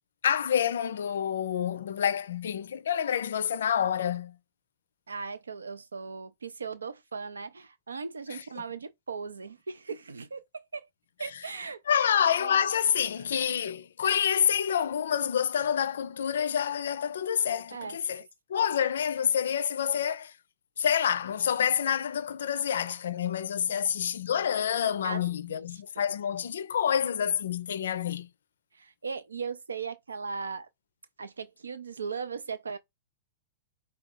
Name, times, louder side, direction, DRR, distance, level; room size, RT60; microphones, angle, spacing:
voice 1, 0.2-4.3 8.3-8.4 11.9-18.2 18.5-20.3 20.8-28.3, left 8 dB, 65° left, 0.4 m, -28 dB
voice 2, 5.1-10.9 11.2-12.5 17.7-18.2 19.9-20.2 23.7-23.8 25.0-25.2 25.5-26.1 28.7-30.7 31.2-32.8, right 5 dB, 80° right, 0.5 m, -38 dB
4.8 x 2.3 x 3.7 m
figure-of-eight pair, 105°, 0 cm